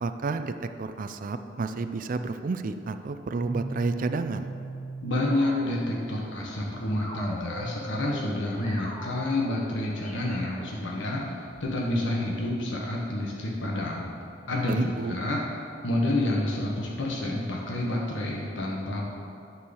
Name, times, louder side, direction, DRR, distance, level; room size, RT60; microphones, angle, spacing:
voice 1, 0.0-4.5 14.7-15.2, right 3 dB, 45° right, 9 dB, 0.4 m, -30 dB
sound 1, 3.3-11.9, equal, 30° left, 2.3 m, -41 dB
voice 2, 5.0-14.1 14.5-19.1, left 1 dB, 75° left, -3 dB, 1.2 m, -29 dB
10.0 x 4.7 x 6.9 m, 2.7 s
head